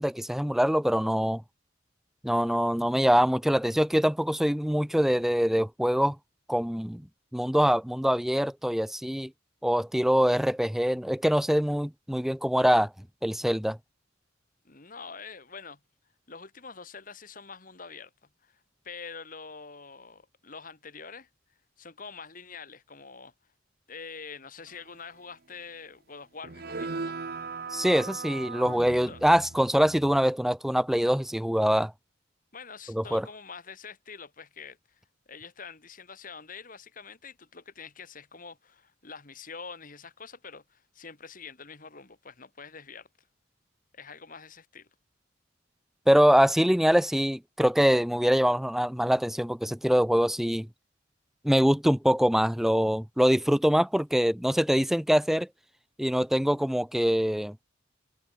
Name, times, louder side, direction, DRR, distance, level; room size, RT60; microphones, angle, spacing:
voice 1, 0.0-1.4 2.2-6.2 6.5-7.0 7.3-9.3 9.6-12.9 13.2-13.8 27.7-31.9 32.9-33.3 46.1-50.7 51.4-55.5 56.0-57.6, equal, ahead, 0.5 m, -24 dB
voice 2, 14.6-15.8 16.3-18.1 18.4-21.3 21.8-23.3 23.9-27.2 29.1-29.2 32.5-35.0 35.3-43.1 43.9-44.9, left 5 dB, 45° left, 2.1 m, -45 dB
sound 1, 26.4-30.2, right 4 dB, 50° right, 0.9 m, -38 dB
head